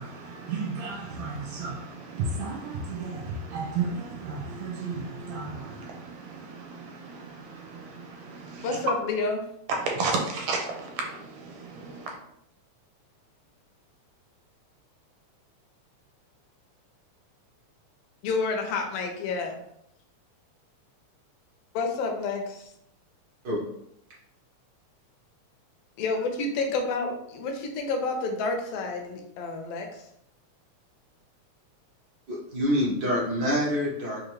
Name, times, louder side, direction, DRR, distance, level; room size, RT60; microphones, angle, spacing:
voice 1, 0.0-8.8 9.7-12.1, right 4 dB, 80° right, 1.8 m, -33 dB
voice 2, 8.6-9.4 18.2-19.5 21.7-22.7 26.0-30.0, left 3 dB, 75° left, 1.5 m, -29 dB
voice 3, 32.3-34.3, equal, 55° right, 1.1 m, -26 dB
4.8 x 2.5 x 3.1 m
omnidirectional pair, 3.3 m